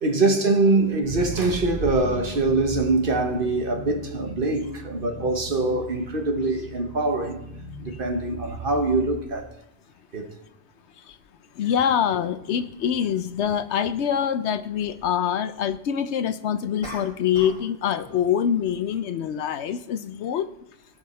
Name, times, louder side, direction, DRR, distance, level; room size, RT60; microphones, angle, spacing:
voice 1, 0.0-7.4 7.8-9.5 10.1-10.3, right 2 dB, 50° right, 1.3 m, -23 dB
sound 1, 1.1-9.2, right 2 dB, 35° right, 2.3 m, -37 dB
voice 2, 11.5-20.5, left 8 dB, 75° left, 0.9 m, -25 dB
sound 2, 16.8-17.7 18.0-18.3, equal, 5° left, 3.1 m, -40 dB
17.0 x 6.4 x 4.3 m
omnidirectional pair, 1.2 m